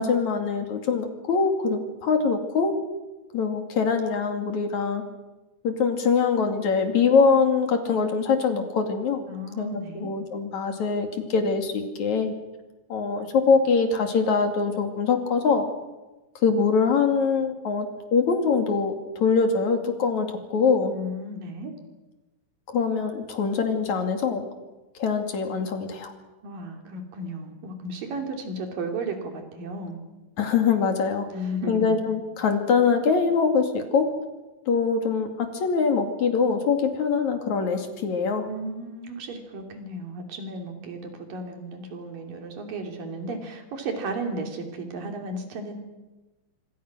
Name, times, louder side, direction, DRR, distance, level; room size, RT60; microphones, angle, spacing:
voice 1, 0.0-2.7 3.3-5.0 5.6-9.2 9.6-12.3 12.9-15.7 16.4-17.9 18.1-20.9 22.7-24.4 25.0-26.1 30.4-31.3 31.7-34.1 34.7-38.5, left 5 dB, 60° left, 5 dB, 3.7 m, -23 dB
voice 2, 9.3-10.1 20.9-21.7 26.4-30.0 31.3-31.9 38.5-45.7, right 1 dB, 85° right, 4 dB, 4.8 m, -34 dB
26.0 x 25.5 x 6.2 m, 1.1 s
omnidirectional pair, 3.8 m